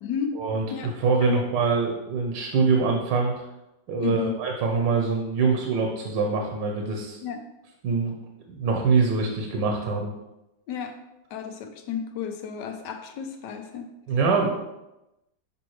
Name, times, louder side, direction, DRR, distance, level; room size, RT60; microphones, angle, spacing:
voice 1, 0.0-0.4 0.7-0.9 1.2-1.5 4.0-4.4 7.2-7.5 10.7-11.0 11.3-13.9, left 7 dB, 75° left, 6 dB, 1.3 m, -32 dB
voice 2, 1.0-3.4 3.9-7.2 7.8-8.2 8.5-10.1 14.1-14.5, right 4 dB, 80° right, 2 dB, 1.4 m, -24 dB
7.0 x 5.2 x 3.1 m, 0.96 s
omnidirectional pair, 1.9 m